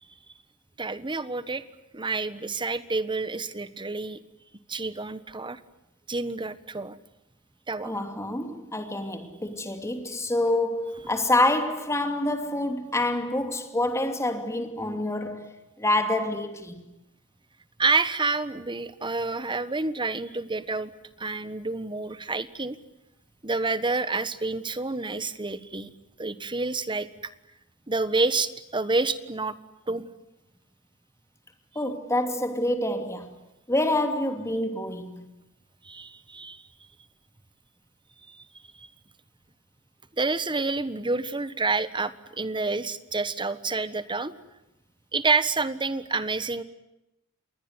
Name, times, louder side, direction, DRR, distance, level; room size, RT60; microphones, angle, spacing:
voice 1, 0.8-1.6 1.9-4.2 4.7-5.6 6.1-7.0 7.7-7.9 17.8-20.9 21.2-22.8 23.4-25.9 26.2-27.3 27.9-29.5 29.9-30.1 35.8-36.6 38.3-38.4 38.8-38.9 40.2-44.3 45.1-46.6, right 3 dB, 20° right, 1.3 m, -28 dB
voice 2, 7.8-16.8 31.7-33.3 33.7-35.3, left 1 dB, 15° left, 2.9 m, -27 dB
28.0 x 21.0 x 9.7 m
head